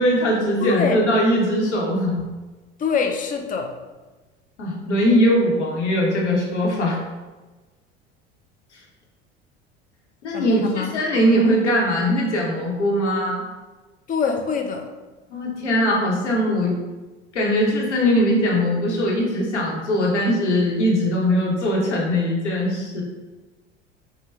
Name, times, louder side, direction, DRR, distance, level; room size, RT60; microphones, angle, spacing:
voice 1, 0.0-2.2 4.6-7.0 8.7-8.8 10.2-13.4 15.3-16.8 17.3-23.0, equal, 85° left, -2 dB, 0.9 m, -20 dB
voice 2, 0.6-1.0 2.8-3.8 10.3-10.9 14.1-14.9, left 6 dB, 25° left, 4 dB, 0.4 m, -24 dB
4.6 x 2.2 x 3.2 m, 1.2 s
figure-of-eight pair, 70°, 34 cm